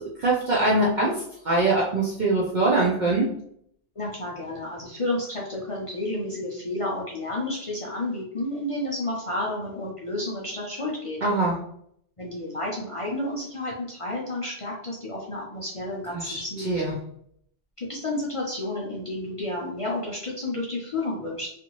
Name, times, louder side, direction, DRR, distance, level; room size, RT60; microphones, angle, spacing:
voice 1, 0.2-1.2 1.4-3.3 11.2-11.5 16.2-16.9, right 2 dB, 55° right, -4 dB, 0.5 m, -23 dB
voice 2, 4.0-11.2 12.2-16.7 17.8-21.5, left 1 dB, 50° left, -4 dB, 0.4 m, -31 dB
2.6 x 2.4 x 2.9 m, 0.69 s
omnidirectional pair, 1.3 m